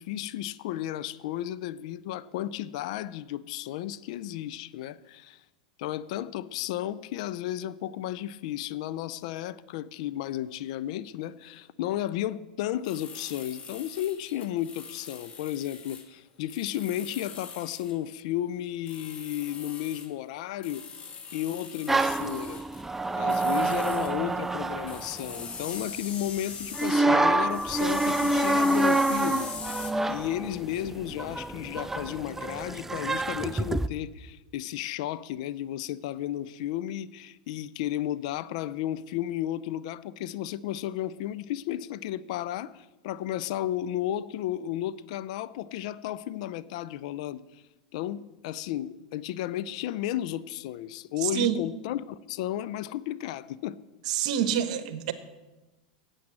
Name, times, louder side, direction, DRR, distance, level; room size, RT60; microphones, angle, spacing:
voice 1, 0.0-5.4 5.8-20.9 21.3-22.6 23.1-47.6 47.9-53.8, left 12 dB, 65° left, 0.5 m, -33 dB
sound 1, 12.9-16.1 16.5-18.0 18.9-20.1 20.6-22.8 23.3-24.1 24.9-27.0 27.5-29.9, left 6 dB, 30° left, 1.5 m, -42 dB
sound 2, 21.9-25.9 26.7-33.9, right 2 dB, 10° right, 0.4 m, -27 dB
voice 2, 51.2-51.6 54.1-55.1, right 10 dB, 70° right, 1.1 m, -27 dB
8.7 x 8.5 x 7.6 m
hypercardioid pair, 110°, 4 cm